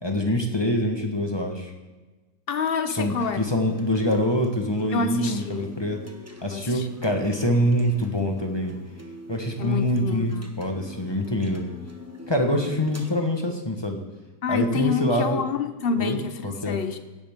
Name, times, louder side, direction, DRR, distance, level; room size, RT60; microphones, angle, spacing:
voice 1, 0.0-1.7 2.9-6.0 6.4-8.7 9.3-11.6 12.3-14.0 14.5-15.4 16.0-16.2 16.4-16.8, equal, 20° left, 3 dB, 1.1 m, -25 dB
voice 2, 2.5-3.5 4.9-5.7 6.5-6.9 9.6-10.5 14.4-17.0, left 5 dB, 50° left, 10 dB, 0.7 m, -27 dB
sound 1, 2.9-13.1, left 2 dB, 10° right, 0.9 m, -45 dB
16.5 x 10.5 x 3.6 m, 1.2 s
omnidirectional pair, 1.7 m